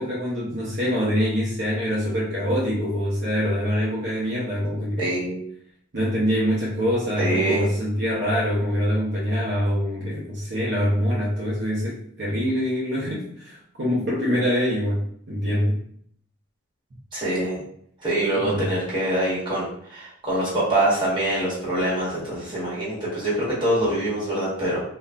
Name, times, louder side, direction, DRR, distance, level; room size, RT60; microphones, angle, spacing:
voice 1, 0.0-5.1 5.9-15.8 18.3-18.7, equal, 50° right, -6 dB, 0.6 m, -24 dB
voice 2, 5.0-5.4 7.2-7.7 17.1-17.6 18.0-24.8, right 1 dB, 20° right, -8 dB, 1.2 m, -24 dB
3.8 x 2.2 x 2.3 m, 0.64 s
head